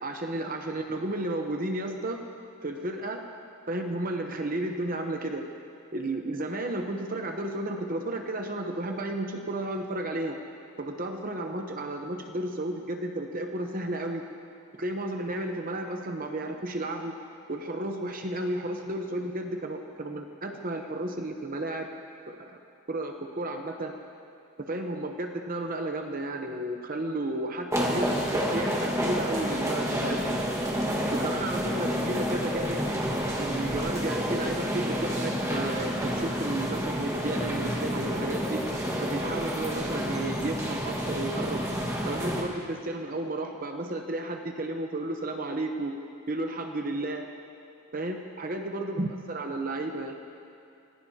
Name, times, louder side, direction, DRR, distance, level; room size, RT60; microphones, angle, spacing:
voice 1, 0.0-2.2 2.6-3.2 3.7-5.5 5.9-10.4 10.8-14.2 14.8-17.1 17.5-21.9 22.3-22.6 22.9-23.9 24.6-30.5 31.1-32.8 33.4-38.6 39.0-41.7 42.0-46.0 46.3-47.3 47.9-50.2, right 1 dB, 40° right, 4 dB, 0.8 m, -33 dB
sound 1, 27.7-42.4, equal, 15° right, 1.5 m, -29 dB
25.5 x 19.0 x 2.8 m, 2.6 s
head